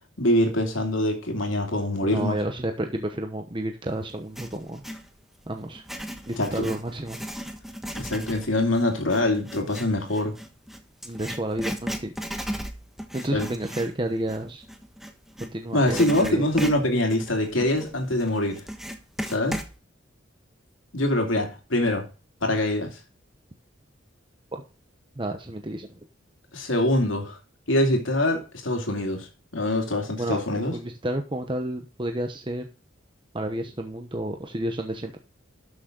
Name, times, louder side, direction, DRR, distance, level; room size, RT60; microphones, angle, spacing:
voice 1, 0.2-2.4 6.4-6.7 7.9-10.3 13.3-13.5 15.7-18.6 19.3-19.6 20.9-22.1 22.4-23.0 26.5-27.4 27.7-29.3 29.5-30.7, left 1 dB, 80° left, 2.6 m, -24 dB
voice 2, 2.1-4.8 5.5-5.8 6.3-7.2 11.0-12.1 13.1-14.6 15.4-16.4 24.5-24.6 25.1-26.0 30.2-32.7 33.3-35.2, right 1 dB, 25° right, 1.0 m, -31 dB
Writing, 4.1-5.1 5.7-15.5 15.9-19.7, equal, ahead, 1.2 m, -36 dB
12.5 x 6.4 x 3.8 m
head